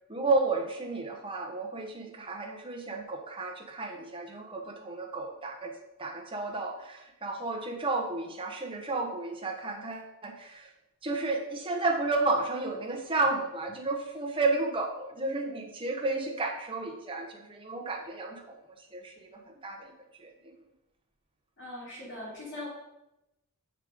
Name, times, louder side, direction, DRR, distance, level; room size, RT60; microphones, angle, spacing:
voice 1, 0.1-5.7 6.0-10.7 11.0-18.4 18.8-19.9 20.2-20.3, right 3 dB, 25° right, 1 dB, 1.0 m, -32 dB
voice 2, 21.6-22.7, left 1 dB, 55° left, -4 dB, 2.8 m, -40 dB
6.5 x 4.9 x 5.0 m, 0.91 s
head